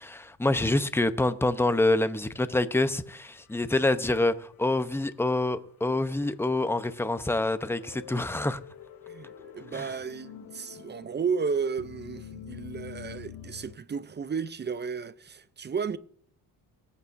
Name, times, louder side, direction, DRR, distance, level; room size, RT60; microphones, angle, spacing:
voice 1, 0.0-8.6 9.7-9.8, left 2 dB, 5° left, 0.7 m, -26 dB
sound 1, 3.1-4.6 5.0-5.1 6.3-13.8, left 9 dB, 55° left, 1.1 m, -47 dB
voice 2, 9.1-16.0, right 5 dB, 25° right, 0.5 m, -33 dB
24.0 x 8.4 x 2.6 m
cardioid pair, 90°, 41 cm